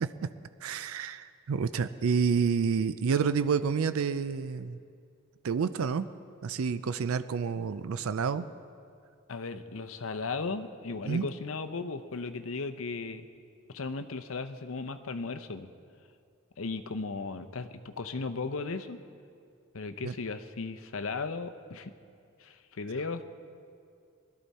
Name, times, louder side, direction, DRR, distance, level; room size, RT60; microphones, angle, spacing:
voice 1, 0.6-4.8 5.4-6.1 6.4-8.5 11.0-11.3 20.0-20.1, right 6 dB, 80° right, 13 dB, 0.4 m, -29 dB
voice 2, 9.3-13.3 13.7-15.7 16.6-19.0 19.7-21.9 22.4-23.2, left 4 dB, 70° left, 10 dB, 0.7 m, -36 dB
20.0 x 12.5 x 4.2 m, 2.3 s
head